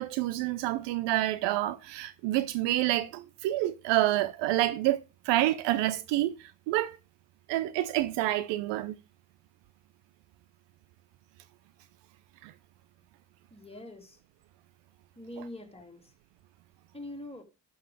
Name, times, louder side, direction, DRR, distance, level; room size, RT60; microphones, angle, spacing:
voice 1, 0.0-5.0 5.3-6.3 6.7-7.0 7.5-8.9 12.4-12.5, right 15 dB, 60° right, 0.8 m, -28 dB
voice 2, 13.5-14.2 15.2-16.1 16.9-17.4, left 1 dB, 10° left, 2.9 m, -44 dB
12.5 x 5.7 x 4.9 m
figure-of-eight pair, 55°, 49 cm